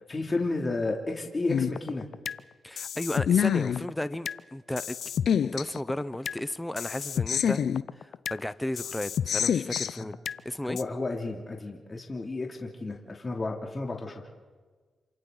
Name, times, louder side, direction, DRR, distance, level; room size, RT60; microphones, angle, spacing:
voice 1, 0.1-2.1 10.0-10.1 10.6-14.3, left 2 dB, 35° left, 0 dB, 2.8 m, -32 dB
sound 1, 1.5-2.4 2.8-4.4 4.8-6.4 6.8-8.4 8.8-10.4 10.8-10.9, left 8 dB, 75° left, 0.5 m, -28 dB
voice 2, 2.6-5.0 5.3-7.6 7.9-10.1 10.4-10.8, left 1 dB, 10° left, 14 dB, 0.8 m, -34 dB
28.0 x 26.5 x 4.0 m, 1.4 s
cardioid pair, 60°, 0 cm